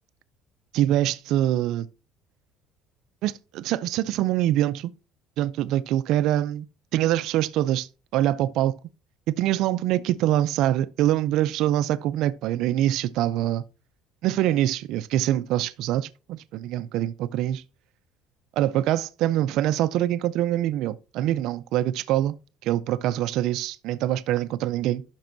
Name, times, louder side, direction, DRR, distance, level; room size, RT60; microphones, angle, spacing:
voice 1, 0.7-1.9 3.2-4.9 5.4-6.7 6.9-8.8 9.4-13.6 14.2-17.6 18.6-22.4 22.6-25.0, right 13 dB, 65° right, 0.3 m, -24 dB
10.5 x 6.0 x 2.6 m
cardioid pair, 135°, 0 cm